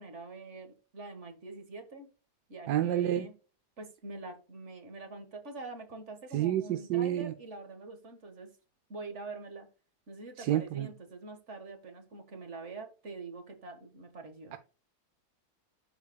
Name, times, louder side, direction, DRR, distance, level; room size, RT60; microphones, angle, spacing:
voice 1, 0.0-2.1 2.5-3.3 3.8-8.5 8.9-9.7 10.1-14.6, right 3 dB, 50° right, 1.7 m, -45 dB
voice 2, 2.7-3.3 6.3-7.3 10.4-10.9 14.5-14.6, right 12 dB, 85° right, 1.2 m, -29 dB
12.0 x 4.8 x 2.2 m
omnidirectional pair, 1.7 m